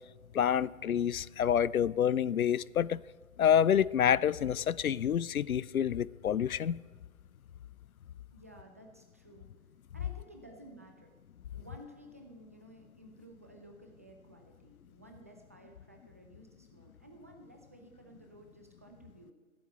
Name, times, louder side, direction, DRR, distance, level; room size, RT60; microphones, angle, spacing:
voice 1, 0.3-3.0 3.4-6.8, left 9 dB, 80° left, 0.5 m, -28 dB
voice 2, 8.3-9.5 9.9-11.1 11.5-19.3, right 1 dB, 10° right, 0.4 m, -54 dB
14.0 x 7.7 x 9.1 m
figure-of-eight pair, 125°, 42 cm